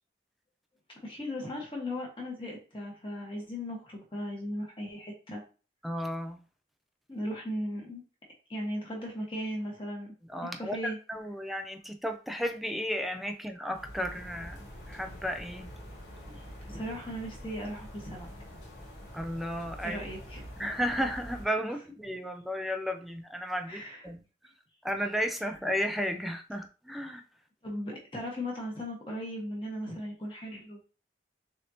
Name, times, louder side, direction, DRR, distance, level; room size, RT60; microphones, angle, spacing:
voice 1, 1.0-5.4 7.1-8.0 8.5-10.1 10.4-11.0 16.3-16.4 16.7-18.3 19.8-20.5 23.7-24.0 27.6-30.8, equal, 25° left, 1.6 m, -37 dB
voice 2, 5.8-6.4 10.3-15.7 19.1-20.0 20.6-24.2 24.8-27.2, equal, ahead, 0.4 m, -33 dB
sound 1, 13.7-21.5, equal, 65° left, 2.1 m, -46 dB
6.3 x 2.7 x 2.9 m
head